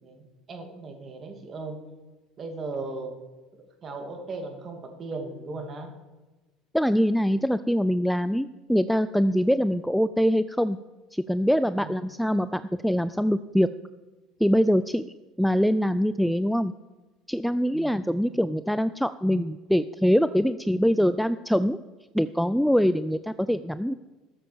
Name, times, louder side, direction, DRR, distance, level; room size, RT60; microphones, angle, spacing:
voice 1, 0.0-1.8 2.4-3.1 3.8-5.9 11.8-11.9 17.7-17.9, right 3 dB, 35° right, 4 dB, 2.6 m, -37 dB
voice 2, 6.7-10.8 11.1-13.7 14.4-15.0 15.4-16.7 17.3-21.8 22.1-23.9, equal, ahead, 13 dB, 0.4 m, -23 dB
13.5 x 7.5 x 7.1 m, 1.2 s
supercardioid pair, 100°, 0 cm